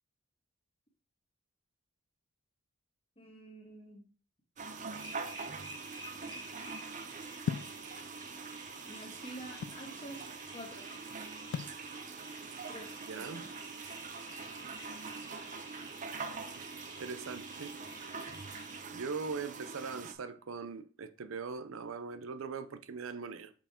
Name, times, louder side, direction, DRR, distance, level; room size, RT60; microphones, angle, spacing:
voice 1, 3.2-4.0 8.8-10.9 12.7-13.5, right 1 dB, 25° left, 1.5 m, -48 dB
sound 1, 4.6-20.1, right 4 dB, 40° right, 0.6 m, -44 dB
sound 2, 4.9-18.8, right 1 dB, 20° right, 1.5 m, -51 dB
sound 3, 7.5-7.8 8.7-9.9 11.5-11.8, left 7 dB, 90° left, 0.3 m, -37 dB
voice 2, 13.1-13.5 16.6-17.8 18.9-23.5, right 5 dB, 80° right, 0.5 m, -41 dB
5.7 x 4.3 x 4.3 m
head